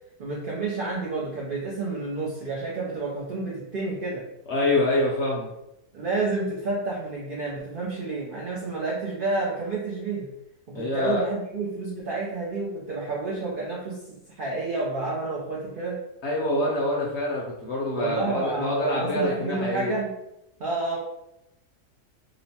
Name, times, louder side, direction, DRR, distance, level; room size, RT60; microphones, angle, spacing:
voice 1, 0.2-4.2 5.9-10.3 10.7-16.0 18.0-20.1 20.6-21.0, right 3 dB, 85° right, -4 dB, 0.4 m, -30 dB
voice 2, 4.5-5.5 10.7-11.2 16.2-19.9, left 1 dB, 65° left, -3 dB, 0.6 m, -25 dB
2.9 x 2.0 x 2.7 m, 0.87 s
omnidirectional pair, 1.6 m